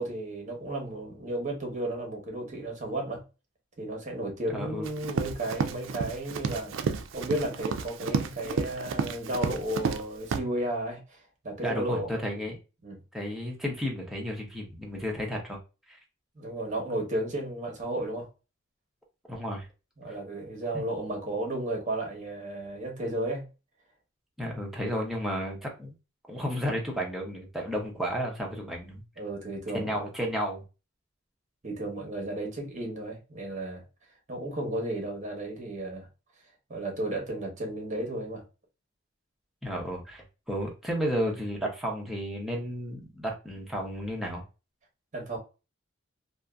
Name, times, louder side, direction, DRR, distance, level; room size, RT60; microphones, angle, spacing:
voice 1, 0.0-3.2 3.8-6.8 7.1-12.1 12.4-12.5 12.8-13.0 16.3-18.3 20.0-23.5 29.2-30.0 31.6-33.8 34.3-36.1 36.7-38.4 45.1-45.4, right 1 dB, 40° right, 1.0 m, -33 dB
voice 2, 4.5-4.9 11.6-12.6 13.1-15.6 15.9-16.0 19.3-19.7 20.7-20.8 24.4-25.9 26.3-29.0 29.7-30.6 39.6-44.4, equal, ahead, 0.8 m, -32 dB
Run, 4.8-10.0 10.3-10.4, right 5 dB, 70° right, 0.3 m, -31 dB
2.7 x 2.5 x 2.3 m
head